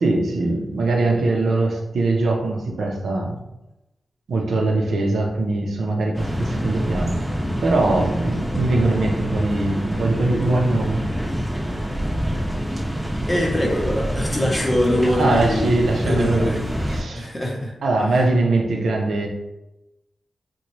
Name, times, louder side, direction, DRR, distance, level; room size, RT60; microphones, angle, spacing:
voice 1, 0.0-3.4 4.3-7.2 7.6-11.0 15.1-16.6 16.9-17.3 17.8-19.3, right 2 dB, 85° right, 0 dB, 0.6 m, -21 dB
sound 1, 6.1-17.0, equal, 15° right, 0.8 m, -26 dB
voice 2, 13.3-16.6 17.1-17.7, left 1 dB, 20° left, -2 dB, 0.8 m, -23 dB
3.9 x 2.2 x 3.0 m, 0.93 s
wide cardioid pair, 145°, 0 cm